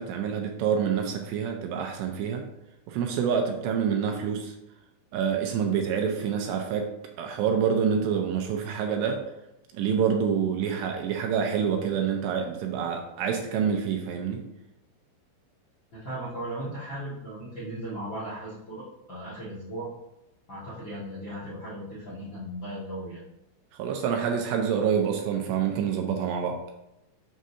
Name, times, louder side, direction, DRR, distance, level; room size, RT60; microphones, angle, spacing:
voice 1, 0.0-2.4 2.9-4.5 5.1-6.9 7.2-9.2 9.7-14.4 23.8-26.6, right 7 dB, 80° right, 3 dB, 2.5 m, -27 dB
voice 2, 15.9-19.9 20.5-23.2, right 1 dB, 85° left, -9 dB, 1.0 m, -37 dB
7.6 x 6.3 x 2.8 m, 0.89 s
omnidirectional pair, 5.6 m